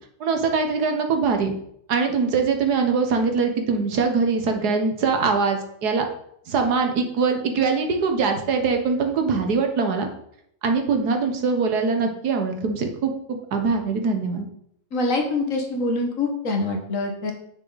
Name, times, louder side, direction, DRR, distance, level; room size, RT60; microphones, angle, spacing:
voice 1, 0.2-1.5 1.9-6.1 6.5-10.1 10.6-14.5, right 4 dB, 75° right, 5 dB, 1.7 m, -22 dB
voice 2, 14.9-17.3, left 2 dB, 55° left, 2 dB, 1.7 m, -25 dB
9.7 x 6.2 x 4.1 m, 0.70 s
omnidirectional pair, 1.7 m